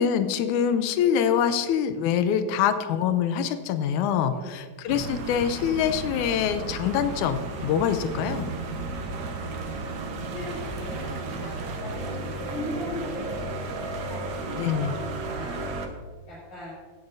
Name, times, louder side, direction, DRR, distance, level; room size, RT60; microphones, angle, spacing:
voice 1, 0.0-8.5 14.6-14.9, left 8 dB, 90° left, 10 dB, 2.1 m, -25 dB
voice 2, 4.3-4.6 10.1-11.5 11.8-13.5 13.9-15.7 16.3-16.7, left 1 dB, 65° left, -10 dB, 4.5 m, -38 dB
sound 1, 4.9-15.9, right 2 dB, 80° right, 0.9 m, -33 dB
16.0 x 9.5 x 2.6 m, 1.5 s
omnidirectional pair, 3.5 m